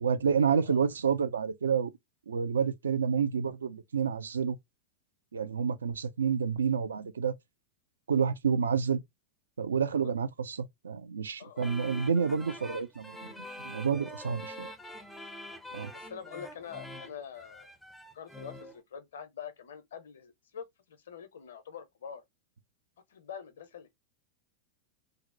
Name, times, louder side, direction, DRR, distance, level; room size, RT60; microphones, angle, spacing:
voice 1, 0.0-1.9 2.3-4.6 5.3-7.3 8.1-9.0 9.6-13.3 13.6-14.7 15.7-15.9, right 6 dB, 70° right, 0.3 m, -29 dB
voice 2, 0.5-0.8 10.0-10.1 11.4-11.7 13.9-14.0 15.9-17.7 18.1-22.2 23.1-23.9, left 7 dB, 65° left, 0.5 m, -45 dB
sound 1, 11.6-18.8, left 1 dB, 5° left, 0.4 m, -45 dB
2.6 x 2.0 x 2.4 m
figure-of-eight pair, 90°, 0 cm